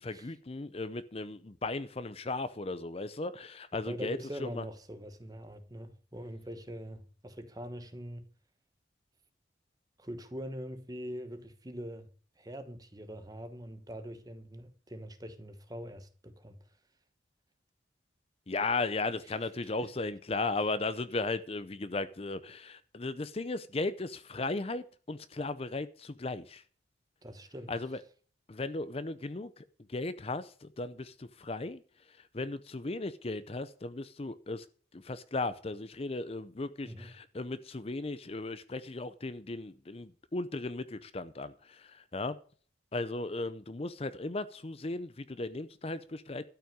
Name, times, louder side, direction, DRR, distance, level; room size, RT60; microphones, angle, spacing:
voice 1, 0.0-4.6 18.5-26.6 27.7-28.0 28.5-34.7 34.9-42.4 42.9-46.4, left 3 dB, 30° left, 0.6 m, -36 dB
voice 2, 3.7-8.3 10.0-12.1 12.4-16.6 19.8-19.9 27.2-27.7 36.8-37.1, equal, 20° right, 1.1 m, -43 dB
12.5 x 5.7 x 8.9 m
head